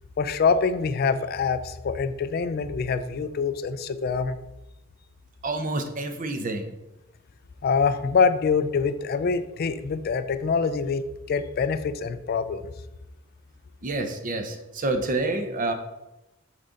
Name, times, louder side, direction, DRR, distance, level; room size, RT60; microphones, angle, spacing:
voice 1, 0.2-4.4 7.6-12.7, left 5 dB, 50° left, 12 dB, 0.4 m, -25 dB
voice 2, 5.4-6.7 13.8-15.7, right 2 dB, 40° right, 6 dB, 0.7 m, -28 dB
6.4 x 3.7 x 5.0 m, 0.95 s
head